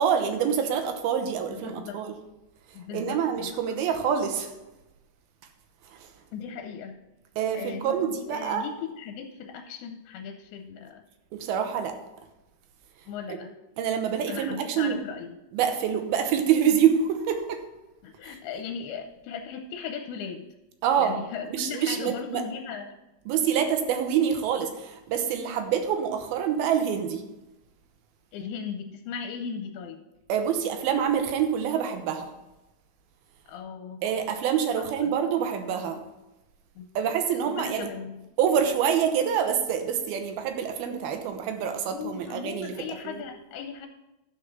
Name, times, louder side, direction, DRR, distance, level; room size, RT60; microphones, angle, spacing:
voice 1, 0.0-2.1 2.9-4.5 5.9-6.1 7.4-8.7 11.3-12.0 13.3-13.4 13.8-15.0 15.5-17.6 18.2-18.3 20.8-21.2 21.5-22.4 23.3-27.2 30.3-32.3 34.0-36.0 37.0-37.9 38.4-43.2, right 8 dB, 75° right, 6 dB, 2.8 m, -26 dB
voice 2, 1.5-2.0 2.7-3.6 6.3-7.0 7.5-11.0 13.1-13.5 14.3-15.3 18.0-20.5 21.0-22.9 28.3-30.0 33.5-34.0 34.8-35.1 36.8-36.9 37.5-38.3 41.9-43.9, left 6 dB, 85° left, 5 dB, 2.5 m, -37 dB
12.0 x 5.1 x 6.0 m, 0.98 s
omnidirectional pair, 4.6 m